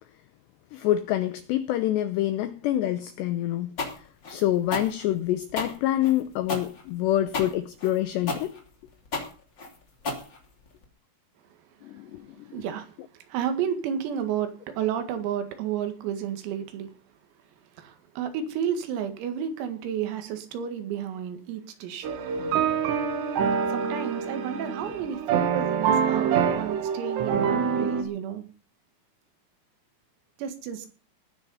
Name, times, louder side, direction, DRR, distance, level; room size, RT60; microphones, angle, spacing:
voice 1, 0.7-4.0 4.3-8.5 11.8-12.2 12.5-12.6, left 13 dB, 85° left, 2.4 m, -26 dB
sound 1, 3.8-10.8, left 3 dB, 30° left, 2.6 m, -33 dB
voice 2, 12.5-16.9 17.8-22.1 23.7-28.4 30.4-30.9, right 8 dB, 85° right, 4.7 m, -32 dB
sound 2, 22.0-28.0, right 7 dB, 65° right, 3.6 m, -26 dB
19.5 x 9.7 x 5.6 m
omnidirectional pair, 6.0 m